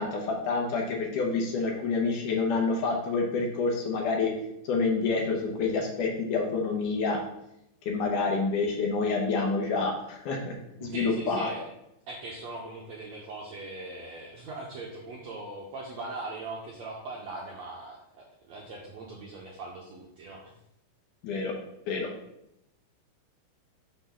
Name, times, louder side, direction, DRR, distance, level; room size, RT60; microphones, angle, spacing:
voice 1, 0.0-4.3 4.6-7.2 7.9-10.5 10.8-11.5 21.2-21.5 21.9-22.1, left 4 dB, 70° left, 0 dB, 2.3 m, -28 dB
voice 2, 10.8-11.6 12.1-20.5, right 2 dB, 75° right, -2 dB, 1.6 m, -40 dB
6.9 x 3.8 x 5.8 m, 0.80 s
omnidirectional pair, 4.3 m